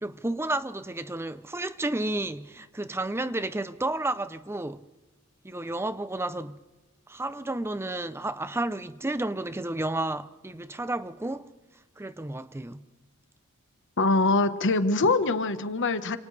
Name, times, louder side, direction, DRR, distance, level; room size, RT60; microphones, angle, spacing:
voice 1, 0.0-4.8 5.4-6.6 7.1-11.5 12.0-12.8, right 2 dB, 10° right, 0.6 m, -31 dB
voice 2, 14.0-16.2, left 3 dB, 55° left, 1.2 m, -23 dB
29.0 x 27.5 x 3.3 m
head